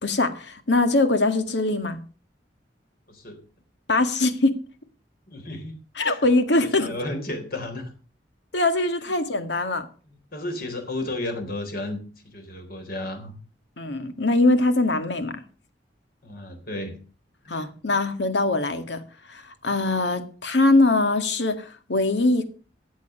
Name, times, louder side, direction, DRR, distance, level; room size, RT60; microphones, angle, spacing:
voice 1, 0.0-2.0 3.9-4.5 6.0-6.9 8.5-9.9 13.8-15.4 17.5-19.0 19.3-22.4, left 2 dB, 80° left, 1.9 m, -22 dB
voice 2, 5.3-5.7 6.0-6.2 6.5-7.9 9.0-9.1 10.1-12.0 12.2-13.3 16.2-17.0 17.4-17.7, left 1 dB, 55° left, 4.0 m, -33 dB
14.0 x 8.4 x 6.7 m
head